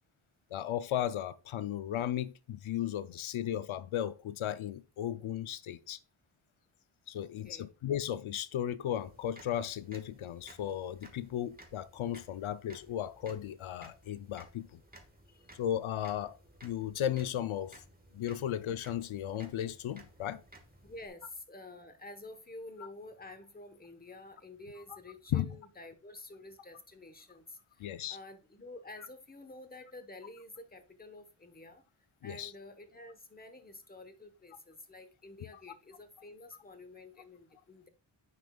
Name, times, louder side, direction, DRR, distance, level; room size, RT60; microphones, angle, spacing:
voice 1, 0.5-6.0 7.1-14.8 15.5-17.8 18.1-20.4 25.3-25.5 27.8-28.2 32.2-32.5, left 11 dB, 90° left, 0.6 m, -35 dB
voice 2, 7.1-7.7 15.3-15.4 20.8-27.6 28.1-31.8 32.2-37.9, left 2 dB, 20° left, 1.1 m, -50 dB
sound 1, 8.9-21.1, right 1 dB, 20° right, 1.5 m, -58 dB
9.6 x 5.1 x 2.3 m
wide cardioid pair, 95°, 47 cm